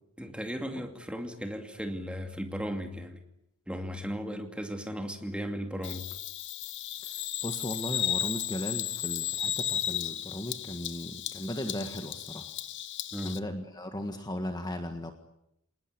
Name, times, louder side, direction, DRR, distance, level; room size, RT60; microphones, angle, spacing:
voice 1, 0.2-3.2 3.7-6.1 13.1-13.4, equal, 5° right, 5 dB, 2.5 m, -36 dB
Bird vocalization bird call bird song, 5.8-13.4, left 11 dB, 55° left, 1.0 m, -34 dB
voice 2, 7.0-12.5 13.2-15.1, equal, 20° left, 6 dB, 1.7 m, -37 dB
26.5 x 19.5 x 10.0 m, 0.81 s
head